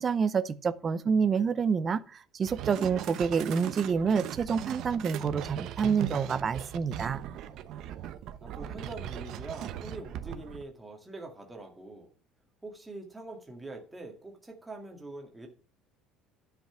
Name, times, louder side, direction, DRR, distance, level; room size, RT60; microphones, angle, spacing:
voice 1, 0.0-7.2, right 6 dB, 25° right, 0.5 m, -28 dB
sound 1, 2.4-10.6, right 10 dB, 50° right, 0.8 m, -39 dB
voice 2, 8.4-12.1 12.6-15.5, right 2 dB, 5° right, 2.0 m, -44 dB
10.5 x 5.9 x 5.8 m
cardioid pair, 170°, 0 cm